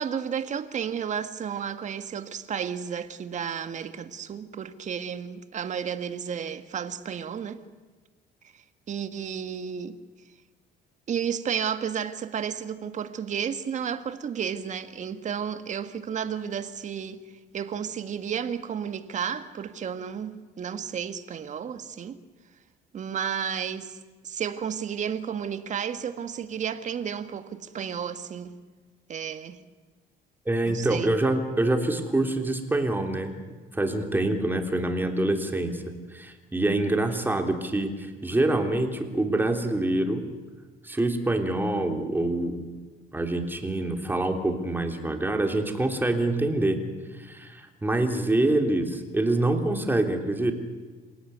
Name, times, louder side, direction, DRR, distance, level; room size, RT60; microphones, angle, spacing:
voice 1, 0.0-7.6 8.5-10.0 11.1-17.2 17.5-22.2 22.9-24.0 24.2-28.6 29.1-29.6 30.7-31.1, right 8 dB, 45° right, 1.8 m, -32 dB
voice 2, 30.4-33.3 33.7-35.8 36.1-40.2 40.8-42.6 43.1-46.8 47.1-50.5, right 2 dB, 10° right, 3.4 m, -25 dB
28.0 x 17.5 x 9.5 m
cardioid pair, 110°, 17 cm